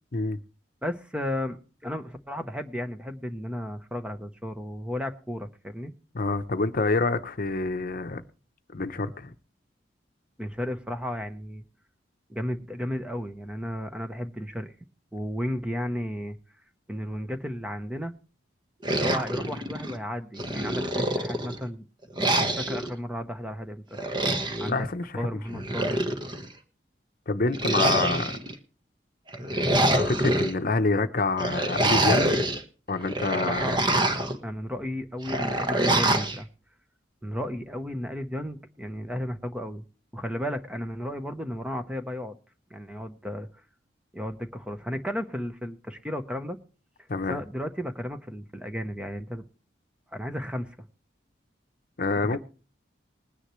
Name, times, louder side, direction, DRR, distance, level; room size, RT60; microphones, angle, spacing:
voice 1, 0.8-5.9 10.4-11.6 12.3-14.7 15.1-16.4 16.9-18.1 18.9-21.8 22.2-24.0 24.6-24.9 25.1-26.1 33.4-33.8 34.4-36.5 37.2-39.8 40.1-42.4 42.7-43.5 44.1-46.6 47.3-49.4 50.1-50.9 52.3-52.4, equal, 5° right, 0.9 m, -34 dB
voice 2, 6.1-8.2 8.7-9.3 24.7-25.3 27.3-28.4 29.5-32.4 32.9-33.8 47.1-47.4 52.0-52.4, left 3 dB, 50° left, 0.8 m, -27 dB
sound 1, 18.8-20.0 20.4-21.6 22.2-22.9 23.9-24.7 25.5-26.5 27.5-28.5 29.3-30.5 31.4-32.6 33.0-34.4 35.2-36.4, right 1 dB, 25° right, 1.3 m, -25 dB
20.5 x 9.9 x 3.2 m
head